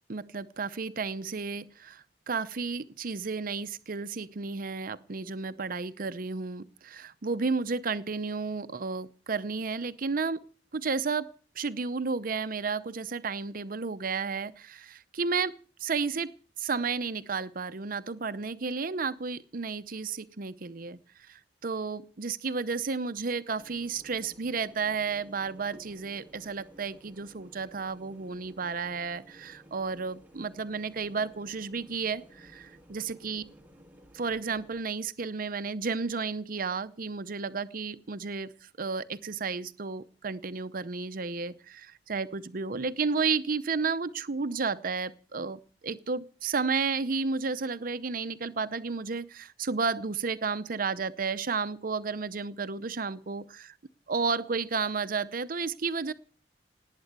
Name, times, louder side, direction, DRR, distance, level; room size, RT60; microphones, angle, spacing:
voice 1, 0.1-10.4 10.7-11.3 11.5-33.4 34.1-53.7 54.1-56.1, right 4 dB, 55° right, 12 dB, 0.7 m, -32 dB
the sound of the old railway cables front, 23.6-34.8, equal, 10° right, 2.0 m, -55 dB
19.0 x 8.9 x 8.1 m, 0.41 s
head